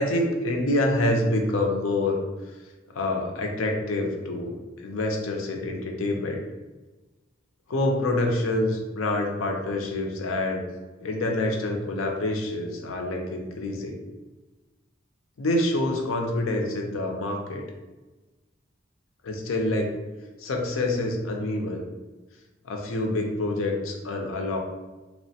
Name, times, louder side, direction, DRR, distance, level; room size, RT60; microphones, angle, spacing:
voice 1, 0.0-2.2 2.9-6.4 7.7-10.6 11.0-14.0 15.4-17.6 19.2-20.0 20.4-21.8 22.6-24.6, left 1 dB, 85° left, 2 dB, 0.5 m, -26 dB
2.8 x 2.1 x 2.7 m, 1.2 s
head